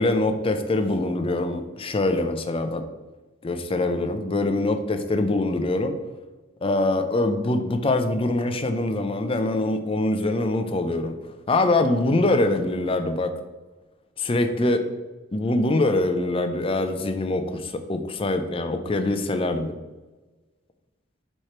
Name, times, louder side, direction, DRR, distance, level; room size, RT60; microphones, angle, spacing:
voice 1, 0.0-2.8 3.4-5.9 6.6-11.1 11.5-13.3 14.2-14.8 15.3-19.7, left 2 dB, 25° left, 8 dB, 0.5 m, -24 dB
4.9 x 4.4 x 4.3 m, 1.2 s
head